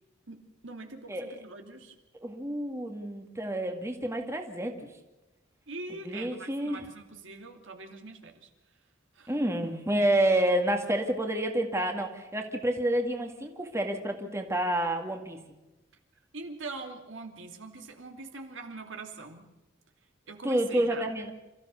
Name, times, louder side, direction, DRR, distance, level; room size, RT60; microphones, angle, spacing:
voice 1, 0.3-1.9 5.7-8.5 9.1-9.3 16.3-19.5 20.3-21.0, right 3 dB, 65° right, 4 dB, 2.7 m, -43 dB
voice 2, 2.2-4.9 6.0-6.9 9.3-15.4 20.4-21.3, right 1 dB, 15° right, 3 dB, 2.0 m, -29 dB
28.0 x 14.5 x 7.0 m, 1.1 s
head